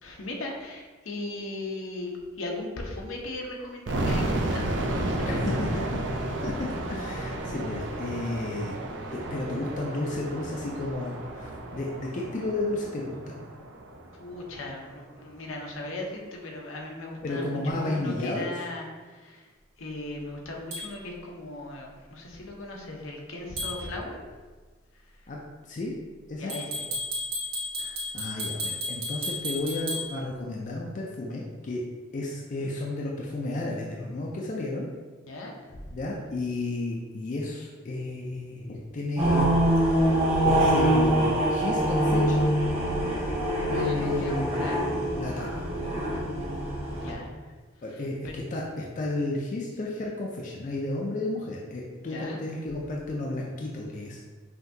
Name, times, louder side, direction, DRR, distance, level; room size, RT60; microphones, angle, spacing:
voice 1, 0.0-5.4 5.7-5.8 14.2-18.9 19.2-19.4 19.8-24.2 26.4-26.9 35.3-35.5 43.7-44.8 46.9-47.3 48.2-48.3 52.0-52.4, left 2 dB, 80° left, 0 dB, 0.8 m, -38 dB
sound 1, 3.9-14.7, right 1 dB, 60° right, 0.4 m, -32 dB
voice 2, 5.2-6.0 6.4-8.8 9.1-13.4 17.2-18.6 25.3-25.9 26.3-26.6 27.8-31.8 32.1-34.9 35.9-39.6 39.9-40.2 40.4-42.5 43.7-44.7 45.0-45.7 47.8-54.2, left 2 dB, 40° left, -2 dB, 0.4 m, -32 dB
sound 2, 20.7-20.9 23.6-23.8 26.5-30.1, left 1 dB, 85° right, 1.4 m, -32 dB
sound 3, 39.2-47.1, right 1 dB, 30° right, 0.8 m, -24 dB
5.7 x 2.7 x 2.7 m, 1.4 s
head